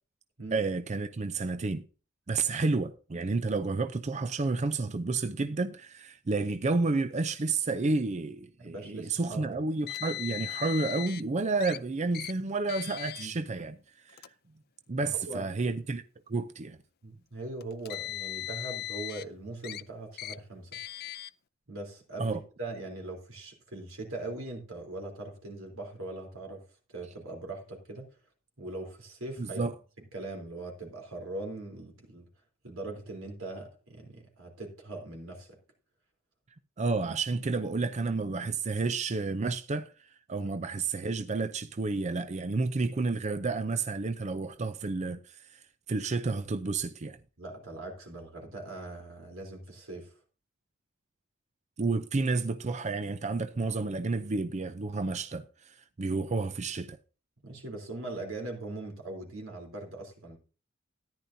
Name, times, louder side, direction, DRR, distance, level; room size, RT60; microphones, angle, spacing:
voice 1, 0.5-1.8 2.3-14.3 14.9-16.0 16.3-16.8 22.2-22.4 29.4-29.7 36.8-45.6 45.9-47.2 51.8-57.0, right 3 dB, 35° right, 0.5 m, -31 dB
voice 2, 8.6-9.6 13.2-13.3 14.9-15.5 17.0-20.8 21.7-26.6 26.9-28.1 28.6-29.6 30.0-32.3 32.6-35.6 40.3-40.5 47.4-50.1 57.4-60.4, right 2 dB, 85° right, 3.5 m, -41 dB
Car, 9.9-11.2 11.6-11.8 12.1-12.3 12.7-13.3 14.1-14.3 15.2-15.3 17.6-19.2 19.6-19.8 20.2-20.4 20.7-21.3, left 14 dB, 50° left, 0.4 m, -38 dB
14.0 x 10.5 x 2.7 m
head